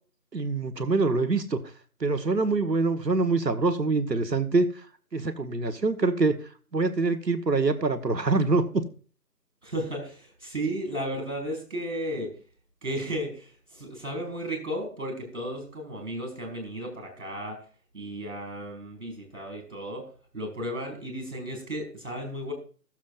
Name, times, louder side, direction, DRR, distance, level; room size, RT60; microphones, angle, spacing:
voice 1, 0.3-1.6 2.0-4.7 5.1-6.3 6.7-8.8, right 3 dB, 85° right, 8 dB, 1.3 m, -25 dB
voice 2, 9.6-12.3 12.8-17.6 17.9-22.5, right 1 dB, 50° right, 4 dB, 4.9 m, -34 dB
17.0 x 7.3 x 2.4 m, 0.39 s
figure-of-eight pair, 170°, 49 cm